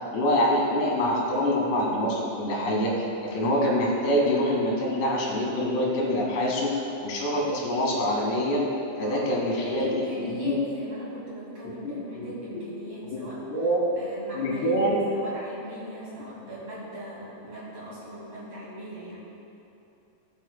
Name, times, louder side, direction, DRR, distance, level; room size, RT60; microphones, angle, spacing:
voice 1, 0.1-2.9 3.2-8.7 9.0-10.0 10.3-10.6 12.5-12.6 13.1-13.8 14.4-15.0 16.5-16.6, equal, 75° left, -3 dB, 3.7 m, -25 dB
voice 2, 9.0-13.4 14.0-19.3, right 1 dB, 45° right, -8 dB, 2.8 m, -39 dB
18.5 x 8.3 x 2.2 m, 2.8 s
omnidirectional pair, 4.9 m